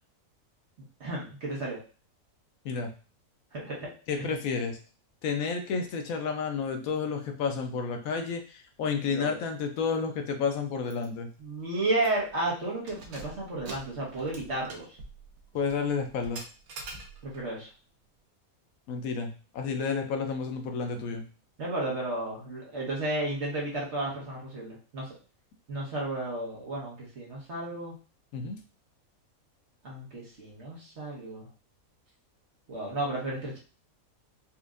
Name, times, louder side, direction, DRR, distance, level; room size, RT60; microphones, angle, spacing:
voice 1, 1.0-1.8 3.5-3.9 4.2-4.3 9.0-9.3 11.4-14.9 17.2-17.7 21.6-25.1 25.7-27.9 29.8-31.5 32.7-33.6, right 2 dB, 50° right, -4 dB, 1.4 m, -33 dB
voice 2, 4.1-4.8 5.2-11.3 15.5-16.4 18.9-21.2 28.3-28.6, left 5 dB, 75° left, 5 dB, 1.0 m, -31 dB
Keys jangling, 10.9-11.1 11.4-11.5 12.0-12.3 12.7-17.5, right 3 dB, 85° right, 1.2 m, -46 dB
4.3 x 2.5 x 2.4 m, 0.36 s
omnidirectional pair, 1.5 m